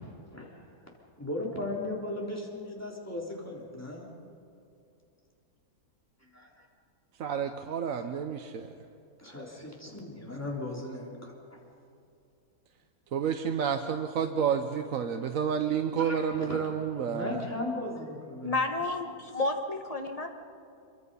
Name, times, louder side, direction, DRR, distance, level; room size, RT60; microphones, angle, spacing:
voice 1, 1.2-4.1 6.3-6.7 9.2-11.6 16.0-16.7 17.1-18.6, left 2 dB, 10° left, -3 dB, 3.6 m, -37 dB
voice 2, 7.2-8.7 13.1-17.4, right 7 dB, 60° right, 5 dB, 1.2 m, -30 dB
voice 3, 18.4-20.3, left 2 dB, 25° left, 4 dB, 1.3 m, -31 dB
25.5 x 23.5 x 5.5 m, 2.6 s
omnidirectional pair, 1.7 m